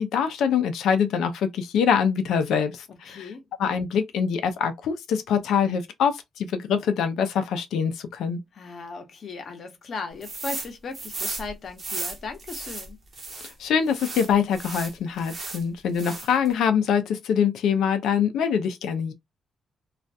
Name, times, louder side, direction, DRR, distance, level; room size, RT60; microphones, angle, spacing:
voice 1, 0.0-3.3 3.6-8.4 13.4-19.1, left 7 dB, 85° left, 0.5 m, -24 dB
voice 2, 2.9-3.5 8.5-13.0, left 4 dB, 45° left, 0.8 m, -37 dB
sound 1, 10.2-10.7 10.9-13.5 13.9-15.6 15.9-16.5, right 3 dB, 30° right, 0.6 m, -35 dB
2.4 x 2.2 x 2.6 m
cardioid pair, 150°, 0 cm